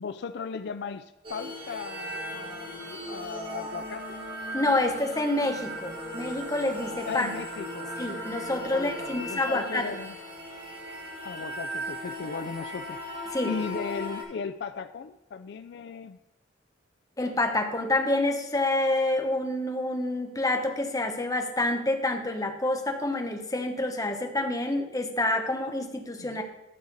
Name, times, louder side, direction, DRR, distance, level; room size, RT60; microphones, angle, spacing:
voice 1, 0.0-4.2 7.0-7.9 8.7-10.2 11.2-13.0 13.4-16.2 26.2-26.4, left 6 dB, 65° left, 11 dB, 0.4 m, -37 dB
sound 1, 1.2-14.2, equal, 30° right, 2.2 m, -37 dB
voice 2, 4.5-7.3 8.0-9.9 13.3-13.5 17.2-26.4, left 2 dB, 20° left, 4 dB, 1.0 m, -28 dB
11.0 x 6.4 x 4.0 m, 0.89 s
head